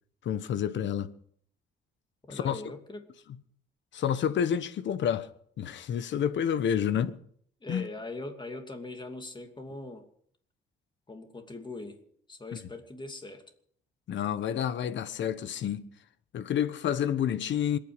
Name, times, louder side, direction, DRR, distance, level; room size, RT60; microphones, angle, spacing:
voice 1, 0.2-1.1 2.3-2.6 3.9-5.3 5.6-7.2 7.7-7.8 14.1-15.8 16.3-17.8, left 9 dB, 65° left, 1.2 m, -29 dB
voice 2, 2.2-3.1 7.6-10.0 11.1-12.0 12.3-13.4, left 2 dB, 25° left, 2.7 m, -41 dB
27.0 x 9.4 x 5.2 m
cardioid pair, 90°, 20 cm